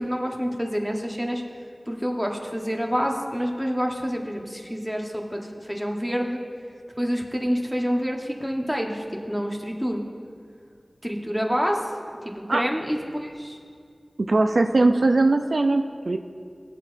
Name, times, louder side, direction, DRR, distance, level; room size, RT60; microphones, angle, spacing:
voice 1, 0.0-1.4 1.9-6.4 7.0-10.0 11.0-11.8 12.2-13.6, equal, ahead, 1 dB, 1.1 m, -27 dB
voice 2, 14.3-16.2, right 2 dB, 75° right, 6 dB, 0.4 m, -20 dB
16.5 x 8.3 x 2.6 m, 2.2 s
wide cardioid pair, 60°, 0 cm